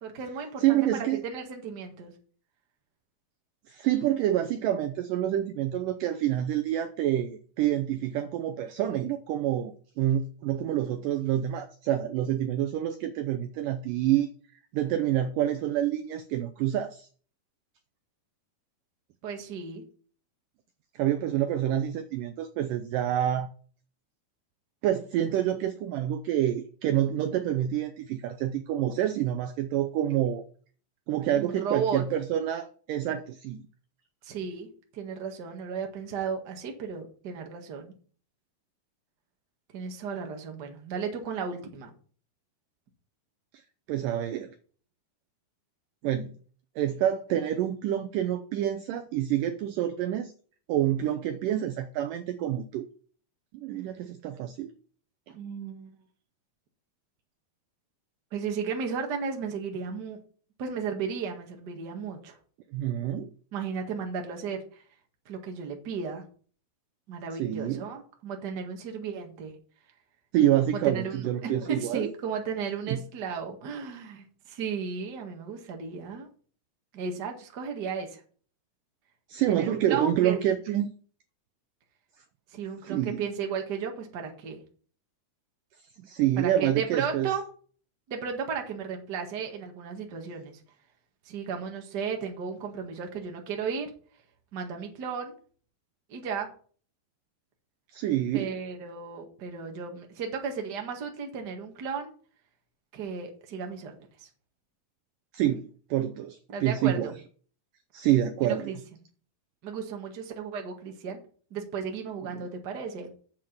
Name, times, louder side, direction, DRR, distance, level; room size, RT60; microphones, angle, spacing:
voice 1, 0.0-2.1 19.2-19.8 31.3-32.0 34.2-37.9 39.7-41.9 55.3-55.9 58.3-60.2 60.6-62.4 63.5-64.8 65.2-66.2 67.1-69.6 70.7-76.3 76.9-78.2 79.5-80.4 82.5-84.6 86.4-87.5 88.1-90.6 91.2-93.9 94.5-95.3 96.1-96.5 98.3-102.1 102.9-104.3 106.5-107.1 107.9-108.0 108.4-108.8 109.6-111.2 111.5-113.1, right 6 dB, 45° right, 3 dB, 1.4 m, -34 dB
voice 2, 0.6-1.2 3.7-14.3 14.7-17.1 21.0-23.5 24.8-30.4 31.1-33.6 43.9-44.5 46.0-46.3 46.8-50.3 50.7-52.9 53.5-54.7 62.7-63.3 67.4-67.8 70.3-72.1 72.9-73.0 79.3-80.9 82.8-83.3 86.0-87.3 97.9-98.5 105.3-107.1 107.9-108.8 112.2-112.5, right 11 dB, 80° right, 9 dB, 2.0 m, -27 dB
7.5 x 7.5 x 5.7 m, 0.43 s
omnidirectional pair, 4.4 m